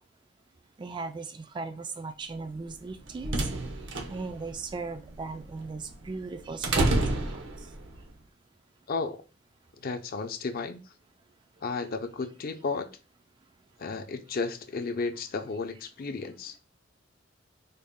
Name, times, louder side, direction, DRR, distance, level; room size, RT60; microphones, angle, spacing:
voice 1, 0.8-3.5 4.1-7.4, right 4 dB, 25° right, 0.3 m, -38 dB
sound 1, 2.7-8.0, right 2 dB, 70° right, 0.7 m, -30 dB
voice 2, 8.9-9.2 9.8-10.8 11.6-12.9 13.8-16.6, left 4 dB, 50° left, 0.5 m, -33 dB
4.0 x 2.1 x 3.5 m
head